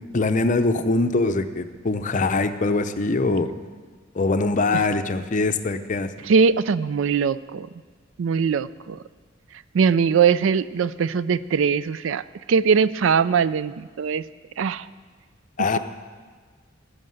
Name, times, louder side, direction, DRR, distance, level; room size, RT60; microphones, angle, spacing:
voice 1, 0.0-3.5 4.2-6.1 15.6-15.8, left 3 dB, 40° left, 9 dB, 0.6 m, -22 dB
voice 2, 6.2-7.7 8.2-9.0 9.7-12.2 12.5-14.2 14.6-14.8, right 6 dB, 80° right, 16 dB, 0.4 m, -21 dB
15.0 x 6.6 x 7.7 m, 1.5 s
head